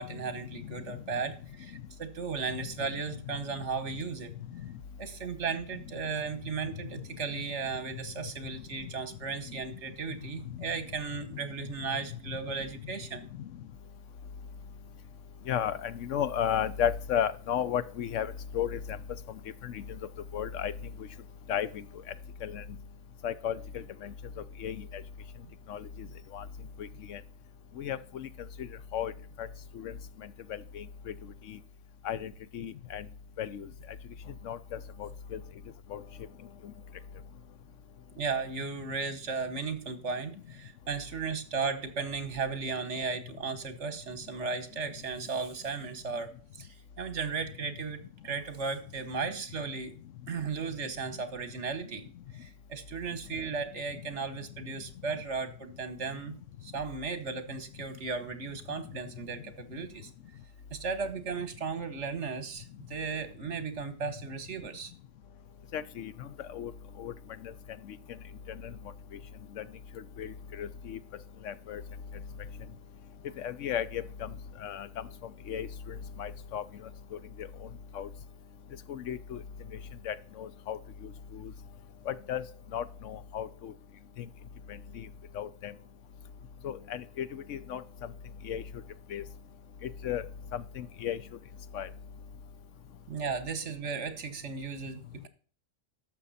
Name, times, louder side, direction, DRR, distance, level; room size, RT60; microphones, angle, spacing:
voice 1, 0.0-4.3 5.0-13.3 26.0-26.1 38.2-46.7 47.0-49.9 50.3-52.0 52.3-56.3 56.6-60.1 60.7-64.9 93.1-95.3, right 5 dB, 70° right, 11 dB, 1.6 m, -35 dB
voice 2, 15.5-19.0 19.6-19.8 20.3-20.7 21.5-21.8 22.4-22.6 23.2-24.1 24.6-25.0 25.7-26.1 26.3-26.4 26.8-27.2 27.8-28.3 28.6-28.7 28.9-29.1 29.4-29.5 29.7-29.9 30.2-31.1 31.5-31.6 32.0-33.1 33.4-33.7 34.4-35.4 35.9-36.0 65.7-66.7 67.0-67.1 67.4-67.5 67.8-68.0 68.5-68.6 69.6-69.7 70.2-71.0 71.4-71.8 73.4-74.3 74.6-75.1 75.5-76.6 77.4-77.5 77.9-78.1 78.9-79.4 80.0-81.5 82.1-82.4 82.7-83.7 85.3-85.7 86.6-87.8 88.4-88.6 89.1-89.2 89.8-90.2 90.5-91.2 91.7-91.9, left 9 dB, 85° left, 16 dB, 1.1 m, -34 dB
12.0 x 7.2 x 4.2 m, 0.42 s
omnidirectional pair, 1.3 m